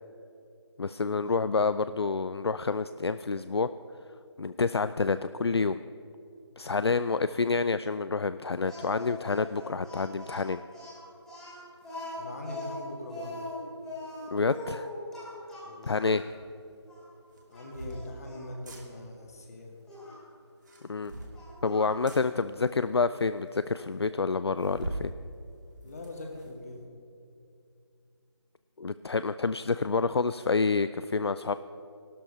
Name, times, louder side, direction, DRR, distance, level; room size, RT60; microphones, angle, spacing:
voice 1, 0.8-3.7 4.4-5.8 6.6-10.6 14.3-14.9 15.8-16.2 20.9-21.1 21.6-25.1 28.8-31.5, left 4 dB, 65° left, 13 dB, 0.4 m, -28 dB
Speech, 8.7-16.2 16.9-17.0 17.5-18.5 19.9-20.2 21.3-22.1, left 1 dB, 5° left, 2.6 m, -42 dB
voice 2, 12.2-13.4 15.6-16.1 17.5-19.7 25.8-26.9, left 2 dB, 35° left, 2 dB, 2.2 m, -42 dB
sound 1, 16.3-16.4 17.3-18.0 18.5-18.8 20.5-21.4 22.1-22.2 22.9-23.0 23.2-23.3 23.6-23.7 24.6-25.1 25.5-26.5, right 1 dB, 40° right, 2.4 m, -40 dB
15.0 x 12.5 x 5.6 m, 2.6 s
figure-of-eight pair, 160°, 15 cm